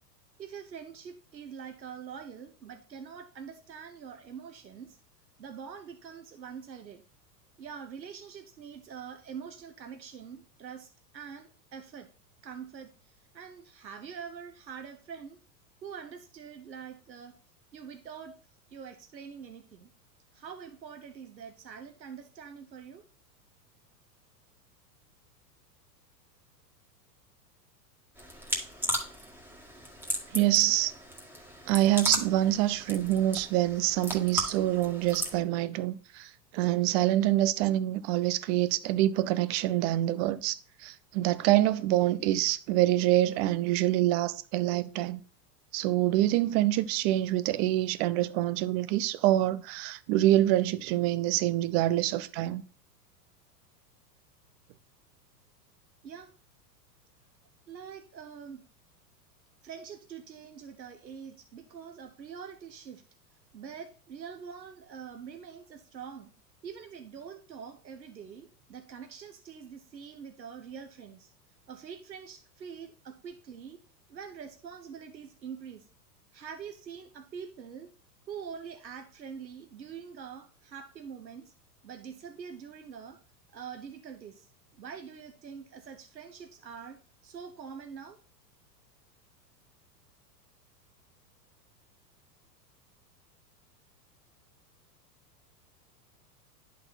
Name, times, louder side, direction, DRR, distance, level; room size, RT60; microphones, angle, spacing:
voice 1, 0.4-5.0 5.4-7.0 7.6-12.1 12.4-15.4 15.8-17.3 17.7-18.3 18.7-19.9 20.3-23.0 56.0-56.3 57.7-58.6 59.6-63.0 63.5-66.3 66.6-71.3 71.7-73.8 74.1-75.9 76.3-77.9 78.3-81.5 81.8-83.2 83.5-87.0 87.2-88.2, right 7 dB, 90° right, 1.0 m, -44 dB
sound 1, 28.2-35.4, equal, 5° right, 1.9 m, -36 dB
voice 2, 30.3-30.9 31.7-45.2 45.7-52.6, right 14 dB, 40° right, 0.6 m, -26 dB
10.5 x 4.2 x 4.0 m
hypercardioid pair, 100°, 49 cm